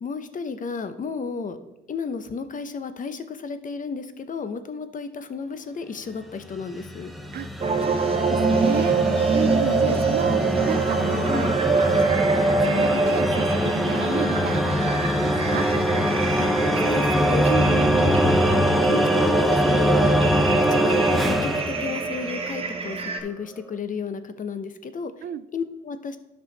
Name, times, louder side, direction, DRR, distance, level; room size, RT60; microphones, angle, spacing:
voice 1, 0.0-1.6 1.9-7.1 9.6-10.0 11.3-11.5 14.1-14.3 16.4-16.5 16.8-17.5 18.8-20.1 20.7-25.1 25.5-26.2, left 5 dB, 40° left, 11 dB, 0.7 m, -32 dB
sound 1, 6.5-22.6, equal, ahead, 0.7 m, -23 dB
sound 2, 7.6-23.2, right 4 dB, 30° right, 1.1 m, -25 dB
voice 2, 7.8-9.0 9.3-15.7 17.5-18.1 25.2-25.4, right 10 dB, 55° right, 15 dB, 0.4 m, -32 dB
9.8 x 5.6 x 3.9 m, 0.92 s
cardioid pair, 90°, 20 cm